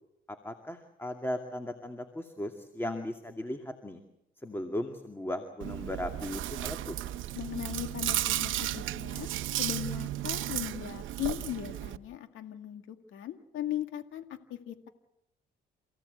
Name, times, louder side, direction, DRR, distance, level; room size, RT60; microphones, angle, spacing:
voice 1, 0.3-4.0 4.4-7.1, left 1 dB, 10° left, 5 dB, 2.4 m, -37 dB
Chewing mastication, 5.6-12.0, right 13 dB, 80° right, 0.9 m, -34 dB
voice 2, 7.3-9.3 9.6-14.2 14.5-14.9, left 11 dB, 85° left, 7 dB, 2.1 m, -38 dB
29.0 x 16.5 x 8.1 m, 0.82 s
cardioid pair, 90°, 20 cm